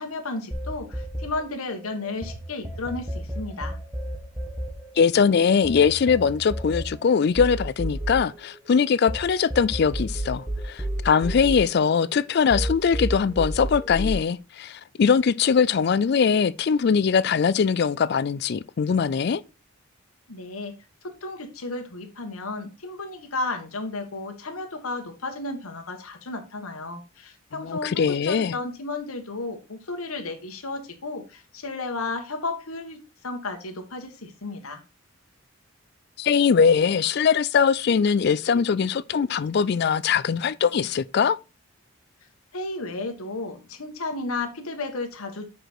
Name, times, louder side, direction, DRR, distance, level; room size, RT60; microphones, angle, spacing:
voice 1, 0.0-3.8 20.3-20.7 21.0-34.8 42.5-45.5, left 3 dB, 85° left, 1.3 m, -33 dB
sound 1, 0.5-2.3 2.6-9.2 9.5-12.2 12.5-14.1, right 1 dB, 5° right, 1.4 m, -31 dB
voice 2, 5.0-19.4 27.5-28.5 36.2-41.4, left 6 dB, 50° left, 0.3 m, -21 dB
6.4 x 5.0 x 4.4 m
head